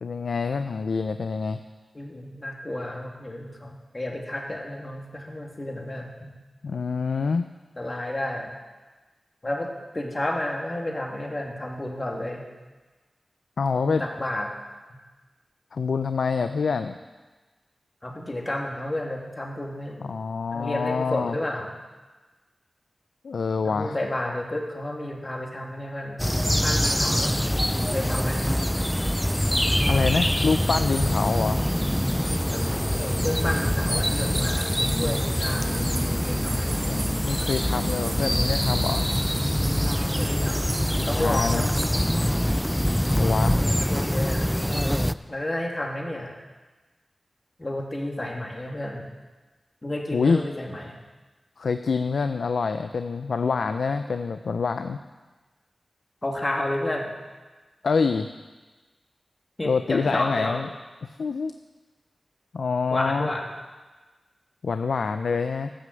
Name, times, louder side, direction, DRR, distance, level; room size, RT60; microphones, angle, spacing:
voice 1, 0.0-1.6 6.6-7.5 13.6-14.0 15.7-17.0 20.0-21.3 23.2-24.0 29.9-31.6 36.9-39.1 40.9-41.7 43.2-43.6 50.1-50.4 51.6-55.0 57.8-58.3 59.6-60.7 61.0-61.5 62.5-63.3 64.6-65.7, left 5 dB, 85° left, 9 dB, 0.4 m, -26 dB
voice 2, 1.9-6.3 7.8-8.5 9.4-9.7 9.9-12.4 13.7-14.5 18.0-20.1 20.5-21.7 23.6-26.2 26.6-27.4 27.8-28.4 32.5-32.6 32.9-36.7 40.0-40.8 41.1-41.7 43.4-44.5 45.3-46.4 47.6-49.1 49.8-51.0 56.2-57.1 59.6-60.5 62.9-63.4, left 1 dB, 35° left, 0 dB, 2.2 m, -31 dB
sound 1, 26.2-45.1, equal, 5° left, 0.3 m, -24 dB
sound 2, 29.4-45.3, left 1 dB, 50° left, 2.2 m, -49 dB
sound 3, 34.1-42.1, right 3 dB, 75° right, 1.6 m, -39 dB
13.0 x 6.3 x 7.8 m, 1.3 s
cardioid pair, 55°, 0 cm